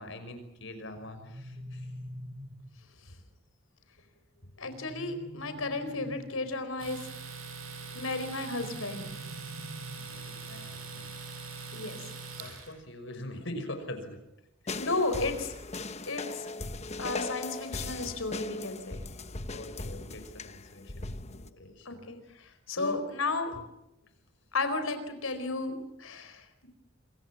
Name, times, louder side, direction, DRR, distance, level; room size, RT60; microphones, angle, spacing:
voice 1, 0.0-2.0 4.0-4.1 4.4-4.5 7.8-8.1 9.9-11.2 12.4-14.2 14.6-14.9 19.5-23.0 24.0-24.1, left 1 dB, 65° left, 9 dB, 5.6 m, -44 dB
sound 1, 0.9-2.9 4.6-6.6 8.3-10.3, equal, 30° right, 1.5 m, -45 dB
voice 2, 4.6-7.0 7.9-9.1 11.7-12.0 14.8-15.5 16.1-16.5 17.0-19.0 21.8-22.2 22.7-23.6 24.5-26.7, left 3 dB, 90° left, 9 dB, 4.5 m, -33 dB
Domestic sounds home sounds, 6.8-12.7, right 5 dB, 85° right, 7.1 m, -42 dB
sound 2, 14.7-21.5, left 3 dB, 30° left, 1.1 m, -38 dB
28.0 x 23.5 x 7.3 m, 0.86 s
head